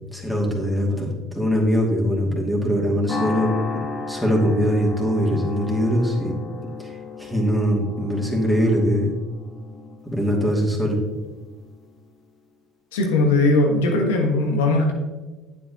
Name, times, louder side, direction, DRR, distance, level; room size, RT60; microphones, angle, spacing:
voice 1, 0.1-3.5 4.1-6.3 6.8-9.1 10.0-11.0, equal, ahead, -3 dB, 2.6 m, -22 dB
sound 1, 3.1-11.6, left 4 dB, 45° left, 2.0 m, -34 dB
voice 2, 12.9-14.9, left 2 dB, 90° left, 2 dB, 1.5 m, -19 dB
9.2 x 7.9 x 3.0 m, 1.3 s
hypercardioid pair, 75°, 0 cm